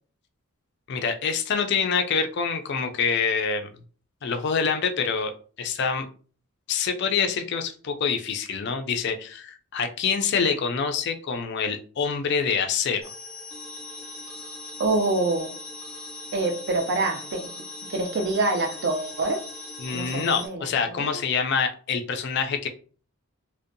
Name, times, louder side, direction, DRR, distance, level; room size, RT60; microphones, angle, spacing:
voice 1, 0.9-3.7 4.2-6.1 6.7-13.0 19.8-22.7, left 6 dB, 50° left, 0.3 m, -26 dB
sound 1, 13.0-20.5, left 2 dB, 5° left, 0.6 m, -40 dB
voice 2, 14.8-15.6 16.3-17.5 17.9-19.5 19.9-20.7 21.0-21.1, right 2 dB, 50° right, 0.4 m, -26 dB
2.6 x 2.1 x 2.5 m
head